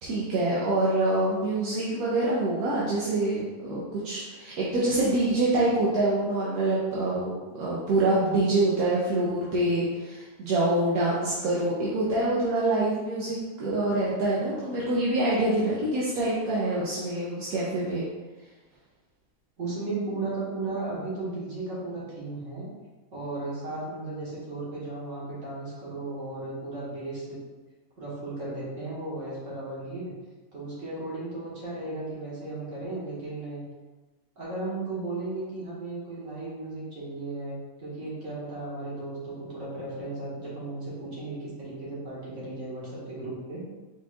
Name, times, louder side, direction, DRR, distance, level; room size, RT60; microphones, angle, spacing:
voice 1, 0.0-18.0, right 2 dB, 80° right, -7 dB, 1.3 m, -26 dB
voice 2, 19.6-22.7 23.1-27.4 28.0-30.1 30.5-33.6 34.4-43.7, right 2 dB, 60° right, -8 dB, 2.0 m, -35 dB
4.4 x 4.3 x 2.4 m, 1.2 s
omnidirectional pair, 1.5 m